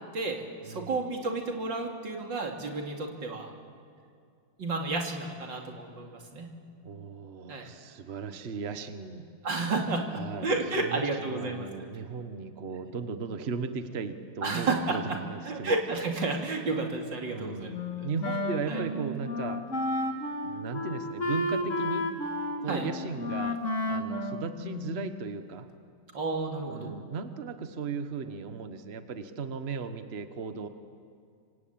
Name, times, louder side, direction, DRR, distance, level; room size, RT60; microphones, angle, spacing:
voice 1, 0.1-3.5 4.6-6.5 7.5-7.7 9.4-11.7 14.4-15.2 15.4-17.7 18.0-18.1 18.7-18.8 22.7-22.9 26.1-26.9, right 3 dB, 90° right, 1 dB, 3.4 m, -31 dB
voice 2, 6.8-9.3 10.2-15.0 15.3-15.7 17.3-17.7 18.0-19.6 20.4-22.1 22.6-23.6 23.9-25.7 26.7-30.7, right 5 dB, 40° right, 9 dB, 1.4 m, -36 dB
Wind instrument woodwind instrument, 17.7-25.2, left 2 dB, 45° left, 2.1 m, -32 dB
26.0 x 25.5 x 8.8 m, 2.3 s
omnidirectional pair, 1.9 m